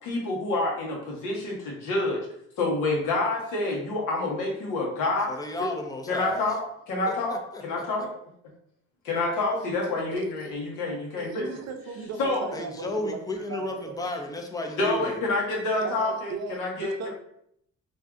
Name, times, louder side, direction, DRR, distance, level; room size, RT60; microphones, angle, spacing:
voice 1, 0.0-2.2 2.6-5.4 6.1-8.1 9.0-11.4 12.2-12.5 14.8-17.1, left 2 dB, 90° left, -2 dB, 1.0 m, -28 dB
voice 2, 5.3-6.4 7.1-7.8 12.5-15.2, left 2 dB, 10° left, 3 dB, 0.5 m, -33 dB
voice 3, 10.1-10.5 11.2-14.1 15.8-17.1, right 5 dB, 60° right, 5 dB, 0.6 m, -37 dB
2.6 x 2.4 x 3.4 m, 0.71 s
cardioid pair, 90°, 30 cm